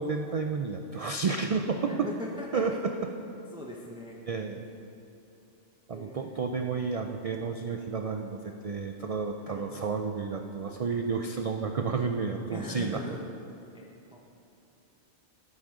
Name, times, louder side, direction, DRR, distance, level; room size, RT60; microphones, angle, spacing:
voice 1, 0.0-1.9 2.5-2.7 4.3-4.6 5.9-13.0, right 5 dB, 60° right, 4 dB, 0.3 m, -31 dB
voice 2, 1.8-2.8 3.5-4.2 5.9-6.4 9.5-9.7 12.5-13.2 13.7-14.2, equal, 5° right, -2 dB, 0.7 m, -40 dB
13.0 x 9.4 x 3.8 m, 2.9 s
omnidirectional pair, 1.2 m